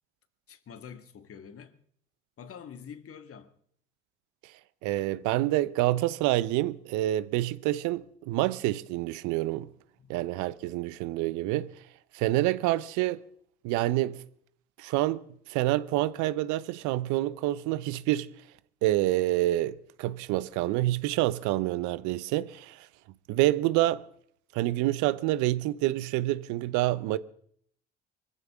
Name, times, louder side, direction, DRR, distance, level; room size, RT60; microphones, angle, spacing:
voice 1, 0.5-1.7 2.4-3.5 10.0-10.1, left 7 dB, 45° left, 1.9 m, -46 dB
voice 2, 4.8-9.7 10.1-11.7 12.1-13.2 13.6-14.2 14.8-15.2 15.5-18.3 18.8-22.9 23.3-24.0 24.5-27.2, right 16 dB, 70° right, 0.9 m, -27 dB
24.0 x 15.0 x 3.6 m
hypercardioid pair, 60°, 31 cm